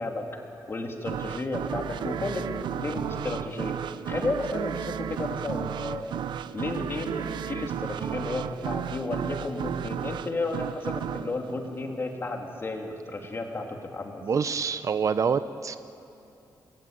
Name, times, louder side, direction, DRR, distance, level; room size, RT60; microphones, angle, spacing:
voice 1, 0.0-3.8 4.1-6.2 6.5-13.7 13.9-14.2, left 2 dB, 30° left, 2 dB, 2.9 m, -33 dB
sound 1, 1.1-12.5, right 10 dB, 90° right, 0.6 m, -34 dB
voice 2, 14.2-15.8, right 6 dB, 45° right, 12 dB, 0.7 m, -26 dB
29.0 x 21.0 x 8.9 m, 2.8 s
wide cardioid pair, 150°, 8 cm